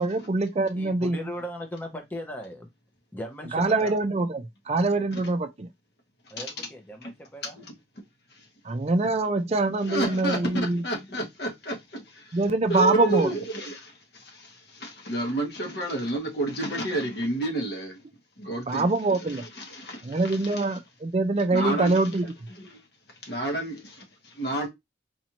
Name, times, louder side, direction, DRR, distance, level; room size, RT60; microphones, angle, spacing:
voice 1, 0.0-1.2 3.5-5.7 8.6-10.8 12.3-13.3 18.7-19.4 20.0-22.2, right 2 dB, 35° right, 0.4 m, -24 dB
voice 2, 0.7-2.7 3.1-4.3 6.3-7.6, equal, 10° left, 0.7 m, -38 dB
voice 3, 9.9-12.4 12.7-18.0 18.4-20.8 21.5-22.8 23.1-24.7, right 1 dB, 55° left, 1.3 m, -31 dB
4.2 x 2.6 x 2.9 m
head